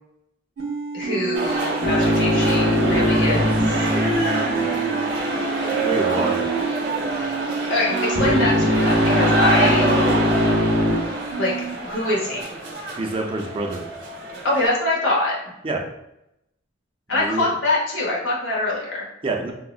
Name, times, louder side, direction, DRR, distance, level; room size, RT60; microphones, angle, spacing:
sound 1, 0.6-11.8, right 5 dB, 90° right, 0.4 m, -29 dB
voice 1, 0.9-3.9 5.9-6.1 7.7-9.9 11.4-11.5 11.8-12.5 14.4-15.4 17.1-19.1, left 2 dB, 70° left, -5 dB, 0.9 m, -24 dB
sound 2, 1.3-14.7, right 2 dB, 60° right, 0.7 m, -26 dB
sound 3, 1.8-5.2 8.2-10.9, left 1 dB, 45° left, 0.8 m, -21 dB
voice 2, 5.8-6.4 13.0-13.8 15.6-15.8 17.1-17.4 19.2-19.5, right 2 dB, 30° right, 1 dB, 0.4 m, -26 dB
3.5 x 2.0 x 2.4 m, 0.83 s
head